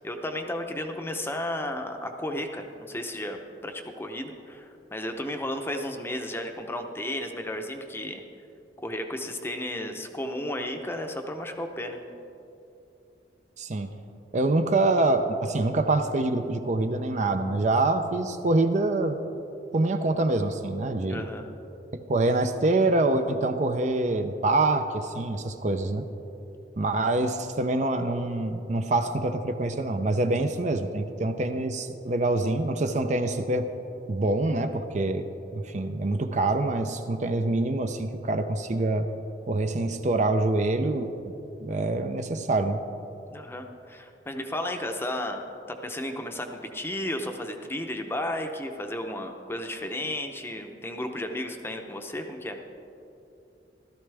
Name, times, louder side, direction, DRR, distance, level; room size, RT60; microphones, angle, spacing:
voice 1, 0.0-8.2 8.8-12.0 21.1-21.4 43.3-52.6, left 1 dB, 15° left, 5 dB, 0.7 m, -33 dB
voice 2, 13.6-13.9 14.3-19.2 19.7-21.3 22.1-26.0 26.8-33.7 34.1-39.1 39.5-41.3 41.6-42.8, right 2 dB, 45° right, 7 dB, 0.5 m, -25 dB
14.5 x 13.0 x 3.4 m, 2.8 s
head